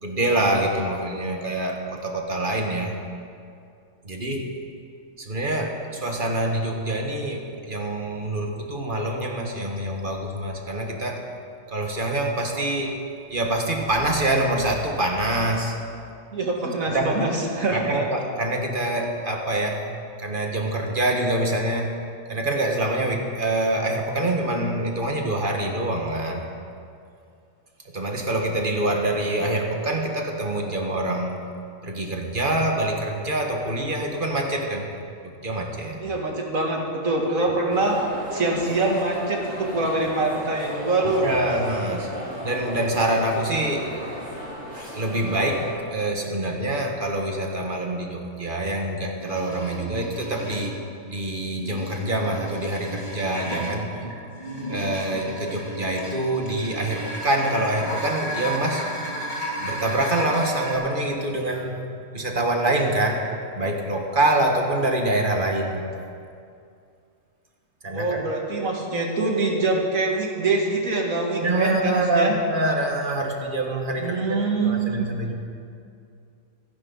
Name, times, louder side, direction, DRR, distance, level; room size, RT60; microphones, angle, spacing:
voice 1, 0.0-2.9 4.0-4.5 5.2-11.2 11.7-13.0 13.3-15.8 16.9-17.2 17.7-19.8 20.2-22.0 22.3-26.4 27.9-31.4 31.8-34.9 35.2-36.0 41.2-42.1 42.4-43.9 44.9-50.8 51.0-54.0 54.7-58.9 59.6-61.8 62.1-63.2 63.5-65.8 67.8-68.3 71.4-75.3, right 1 dB, 40° right, 1 dB, 1.7 m, -25 dB
voice 2, 16.3-18.0 36.0-38.0 38.3-41.3 67.9-72.4 74.0-75.1, right 3 dB, 90° right, 0 dB, 2.5 m, -24 dB
sound 1, 37.7-45.7, equal, 55° right, 4.1 m, -34 dB
sound 2, 49.2-50.8 51.5-60.7, equal, 35° left, 3.0 m, -34 dB
27.0 x 10.5 x 4.1 m, 2.4 s
omnidirectional pair, 1.4 m